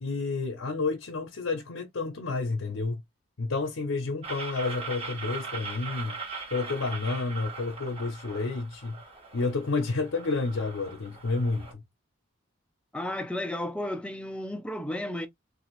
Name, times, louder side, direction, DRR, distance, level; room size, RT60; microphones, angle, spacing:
voice 1, 0.0-3.0 3.4-6.2 6.5-9.0 9.3-11.8, left 3 dB, 80° left, 0.7 m, -30 dB
sound 1, 4.2-11.7, right 4 dB, 30° right, 1.0 m, -40 dB
voice 2, 12.9-15.3, left 1 dB, 5° left, 0.5 m, -33 dB
3.3 x 2.5 x 3.0 m
head